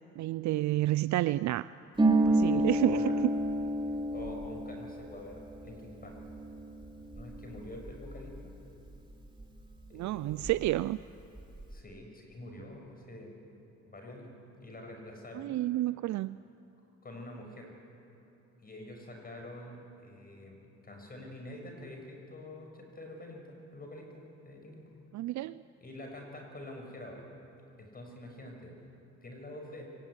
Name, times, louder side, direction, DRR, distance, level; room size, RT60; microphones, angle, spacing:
voice 1, 0.2-1.7 2.3-3.1 9.9-11.0 15.3-16.4 25.1-25.6, right 15 dB, 70° right, 16 dB, 0.5 m, -30 dB
Harp, 1.9-9.4 9.7-10.8 11.1-11.7, right 1 dB, 15° right, 3.3 m, -31 dB
voice 2, 4.1-6.2 7.1-8.5 9.9-10.5 11.7-13.4 13.9-14.3 14.6-15.6 17.0-17.7 18.6-24.9 25.8-27.2 27.8-28.7 29.2-29.8, left 1 dB, 30° left, 2 dB, 6.2 m, -46 dB
23.5 x 18.5 x 9.8 m, 3.0 s
cardioid pair, 90°, 30 cm